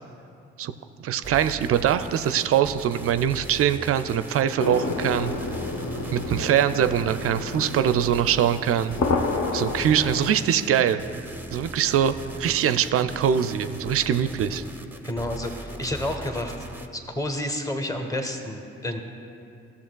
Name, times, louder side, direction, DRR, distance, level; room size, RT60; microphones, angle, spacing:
voice 1, 1.0-5.3 6.1-8.9 9.5-14.6, right 9 dB, 45° right, 11 dB, 0.4 m, -23 dB
sound 1, 1.2-16.9, right 2 dB, 5° right, 0.6 m, -40 dB
sound 2, 4.6-10.4, left 3 dB, 50° left, 0.9 m, -30 dB
voice 2, 15.0-16.5 16.9-19.0, left 1 dB, 10° left, 4 dB, 1.1 m, -30 dB
15.0 x 7.0 x 2.3 m, 2.6 s
figure-of-eight pair, 45°, 33 cm